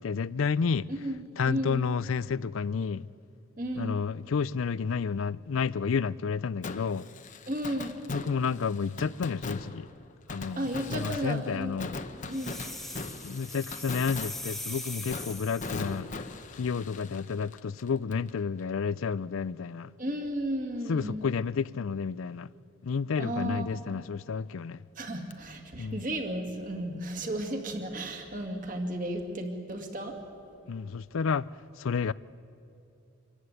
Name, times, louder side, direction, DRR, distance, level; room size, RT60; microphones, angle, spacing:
voice 1, 0.0-0.9 1.4-3.0 3.8-7.1 8.1-9.9 10.3-11.9 13.2-16.1 16.5-19.9 20.9-22.5 22.8-24.8 25.8-26.0 30.7-31.5 31.8-32.1, left 5 dB, 70° left, 0.4 m, -30 dB
voice 2, 1.4-1.8 3.6-4.0 7.5-7.9 10.6-11.8 12.3-12.5 20.0-21.3 23.2-23.8 25.0-30.1, right 1 dB, 40° right, 2.3 m, -34 dB
Fireworks, 6.6-18.3 18.6-18.7 25.3-25.4, left 3 dB, 35° left, 0.9 m, -40 dB
sound 1, 12.3-16.0, left 1 dB, ahead, 0.9 m, -41 dB
25.5 x 14.5 x 9.7 m
head